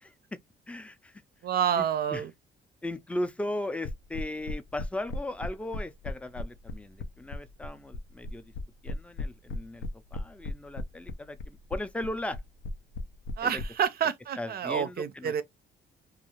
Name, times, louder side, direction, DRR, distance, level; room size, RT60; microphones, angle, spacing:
voice 1, 0.0-0.4 0.7-1.2 1.8-2.2 2.8-8.5 8.8-9.8 10.1-12.4 13.4-13.5 14.4-15.4, left 1 dB, 5° left, 0.4 m, -37 dB
voice 2, 1.4-2.3 13.4-15.4, right 8 dB, 50° right, 0.5 m, -28 dB
sound 1, 3.8-13.7, left 2 dB, 85° left, 0.6 m, -36 dB
2.4 x 2.3 x 3.0 m
cardioid pair, 90°, 20 cm